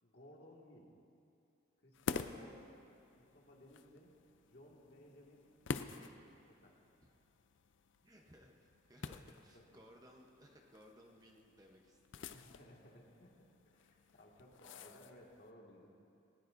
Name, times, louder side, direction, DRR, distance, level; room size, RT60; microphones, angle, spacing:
voice 1, 0.0-0.9 1.8-2.7 3.2-4.1 4.5-5.5 5.8-6.1 6.5-6.8 9.5-9.6 12.3-16.0, left 1 dB, 55° left, -2 dB, 1.9 m, -60 dB
sound 1, 1.9-15.5, left 5 dB, 75° left, 0.5 m, -49 dB
voice 2, 8.0-12.3, equal, 20° right, 1 dB, 0.8 m, -62 dB
19.5 x 18.0 x 2.6 m, 2.6 s
head